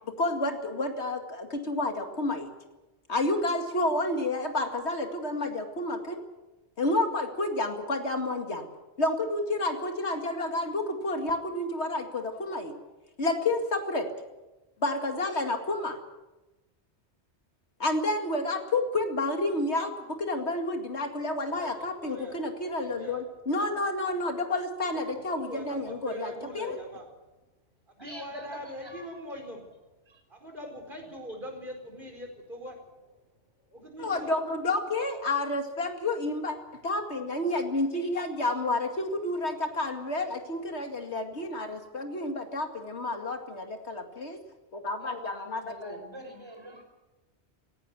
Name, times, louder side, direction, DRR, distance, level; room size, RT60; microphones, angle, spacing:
voice 1, 0.1-2.5 3.1-6.2 6.8-8.7 9.0-12.8 13.2-14.1 14.8-16.0 17.8-26.8 34.0-44.4 44.7-46.0, left 2 dB, 75° left, 5 dB, 2.5 m, -30 dB
voice 2, 21.5-22.4 22.7-23.2 25.1-27.1 27.9-29.7 30.3-33.3 33.7-34.3, equal, 50° right, 3 dB, 4.8 m, -42 dB
voice 3, 28.0-29.2 30.0-30.2 45.0-46.8, equal, 25° right, 3 dB, 4.9 m, -45 dB
17.5 x 17.5 x 9.6 m, 1.1 s
omnidirectional pair, 1.1 m